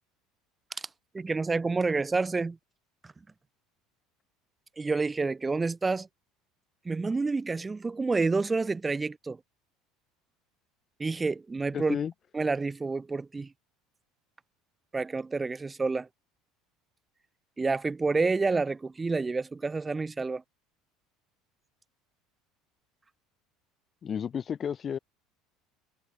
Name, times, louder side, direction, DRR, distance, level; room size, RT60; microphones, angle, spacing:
voice 1, 1.1-2.6 3.0-3.1 4.8-6.1 6.9-9.4 11.0-12.0 12.3-13.5 14.9-16.1 17.6-20.4, right 3 dB, 10° right, 1.7 m, -29 dB
voice 2, 11.7-12.1 24.0-25.0, left 8 dB, 25° left, 5.2 m, -32 dB
cardioid pair, 175°, 0 cm